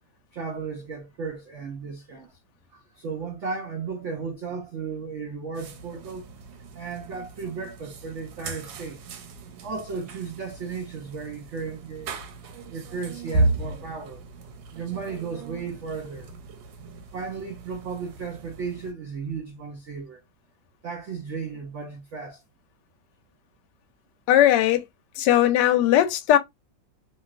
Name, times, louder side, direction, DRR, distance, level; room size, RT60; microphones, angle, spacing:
voice 1, 0.3-2.4 2.7-6.3 6.7-9.0 9.6-12.2 12.7-14.2 14.7-16.3 17.1-20.2 20.8-22.4, right 5 dB, 70° right, 0.7 m, -35 dB
sound 1, 5.5-18.9, right 2 dB, 90° right, 1.4 m, -34 dB
voice 2, 24.3-24.9 25.2-26.4, left 12 dB, 75° left, 1.1 m, -19 dB
3.1 x 2.7 x 2.3 m
omnidirectional pair, 2.0 m